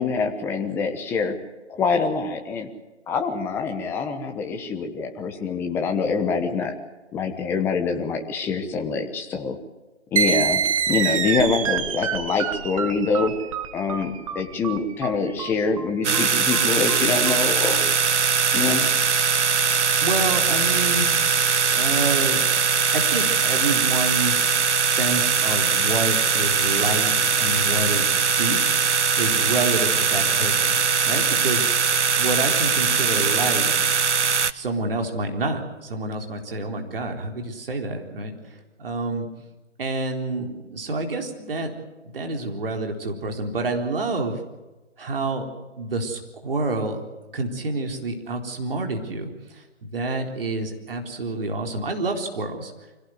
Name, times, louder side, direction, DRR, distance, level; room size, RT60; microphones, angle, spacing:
voice 1, 0.0-1.3 1.7-2.7 3.1-6.7 7.1-9.6 10.1-10.6 10.9-13.3 13.7-17.8 18.5-18.9, left 4 dB, 5° left, 4 dB, 1.1 m, -25 dB
sound 1, 10.2-17.4, right 7 dB, 30° right, 1.3 m, -26 dB
sound 2, 16.0-34.5, right 6 dB, 70° right, 1.0 m, -21 dB
voice 2, 20.0-21.2 21.7-22.5 22.9-24.4 24.7-28.6 29.2-30.8 31.0-31.7 32.2-33.7 34.5-39.3 39.8-41.7 42.0-44.4 45.0-45.5 45.8-47.0 47.3-52.7, right 2 dB, 50° right, 3 dB, 4.1 m, -28 dB
25.0 x 17.5 x 8.0 m, 1.1 s
figure-of-eight pair, 150°, 36 cm